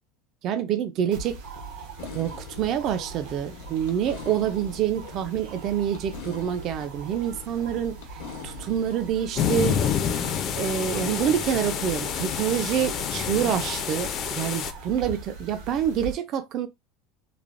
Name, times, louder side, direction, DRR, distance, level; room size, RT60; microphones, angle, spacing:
voice 1, 0.4-1.4 2.1-9.8 10.6-16.7, right 9 dB, 35° right, 0.3 m, -27 dB
sound 1, 1.1-16.1, right 3 dB, 75° right, 0.8 m, -41 dB
sound 2, 2.0-10.2, left 7 dB, 85° left, 0.8 m, -44 dB
sound 3, 9.4-14.7, left 8 dB, 35° left, 0.4 m, -28 dB
3.2 x 2.0 x 2.4 m
cardioid pair, 165°, 0 cm